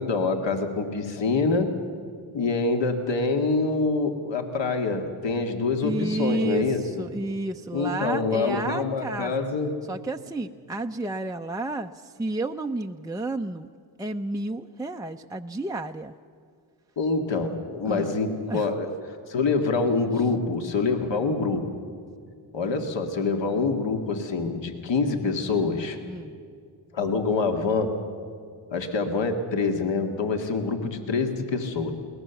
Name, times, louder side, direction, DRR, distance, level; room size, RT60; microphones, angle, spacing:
voice 1, 0.0-1.7 2.3-6.8 7.7-9.7 17.0-18.9 19.3-21.8 22.5-26.0 26.9-27.9 28.7-31.9, left 4 dB, 60° left, 5 dB, 2.1 m, -26 dB
voice 2, 5.8-9.3 9.9-13.7 14.0-16.1 17.8-18.2 18.5-18.7 26.0-26.3, right 2 dB, 10° right, 4 dB, 0.6 m, -31 dB
21.5 x 18.0 x 7.0 m, 2.2 s
cardioid pair, 60°, 50 cm